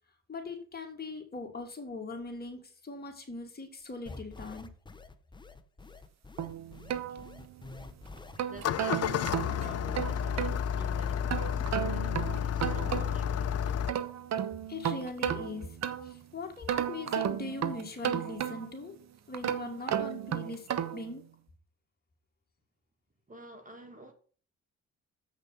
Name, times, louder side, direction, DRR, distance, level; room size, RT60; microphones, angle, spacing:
voice 1, 0.3-4.7 14.7-15.8 16.0-19.0 19.3-21.2, left 3 dB, 30° left, 2.9 m, -41 dB
sound 1, 4.1-11.4, left 3 dB, 15° left, 1.0 m, -49 dB
sound 2, 6.4-7.7 8.2-10.6 11.3-13.3 13.7-16.2 16.7-18.8 19.3-21.1, right 9 dB, 60° right, 1.1 m, -34 dB
Engine starting, 8.5-13.9, left 9 dB, 55° left, 0.7 m, -31 dB
voice 2, 8.5-13.9 23.3-24.1, right 1 dB, 25° right, 2.2 m, -49 dB
7.9 x 6.4 x 5.8 m
cardioid pair, 90°, 30 cm